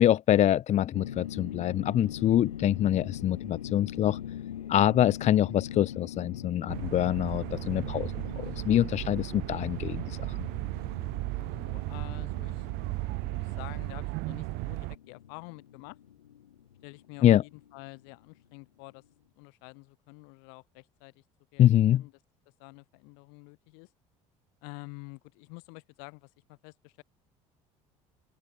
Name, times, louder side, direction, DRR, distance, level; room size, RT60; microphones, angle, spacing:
voice 1, 0.0-4.2 4.7-10.4 17.2-17.4 21.6-22.0, left 12 dB, 40° left, 0.4 m, -25 dB
sound 1, 0.9-18.1, left 10 dB, 90° left, 1.1 m, -42 dB
sound 2, 6.7-14.9, right 24 dB, 65° right, 1.3 m, -35 dB
voice 2, 11.3-12.7 13.2-16.0 16.8-19.0 19.4-21.2 21.5-22.1 22.6-23.9 24.6-27.0, left 40 dB or more, 70° left, 3.7 m, -48 dB
open air
hypercardioid pair, 65°, 18 cm